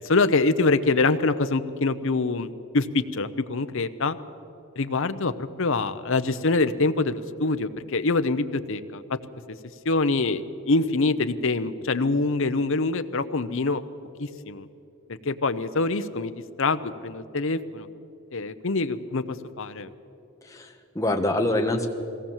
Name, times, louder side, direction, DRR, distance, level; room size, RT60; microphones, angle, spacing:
voice 1, 0.0-4.2 4.8-9.2 9.8-13.8 14.2-14.7 15.1-16.3 16.6-17.9 18.3-19.2 19.6-19.9, left 3 dB, 60° left, 11 dB, 0.8 m, -25 dB
voice 2, 20.4-21.9, left 1 dB, 15° left, 3 dB, 1.3 m, -25 dB
21.5 x 17.5 x 7.3 m, 2.7 s
head